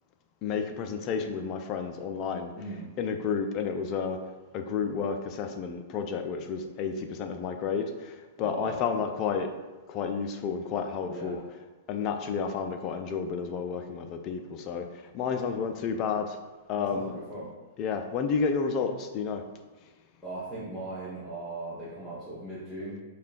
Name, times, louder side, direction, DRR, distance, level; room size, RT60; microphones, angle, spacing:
voice 1, 0.4-2.5 3.0-4.2 4.5-9.5 9.9-11.4 11.9-16.4 16.7-17.1 17.8-19.4, left 6 dB, 35° left, 6 dB, 0.3 m, -31 dB
voice 2, 2.6-2.9 8.4-8.8 11.0-11.4 16.8-17.5 20.2-23.0, right 2 dB, 5° left, -11 dB, 0.9 m, -38 dB
4.8 x 2.2 x 2.4 m, 1.2 s
figure-of-eight pair, 105°, 0 cm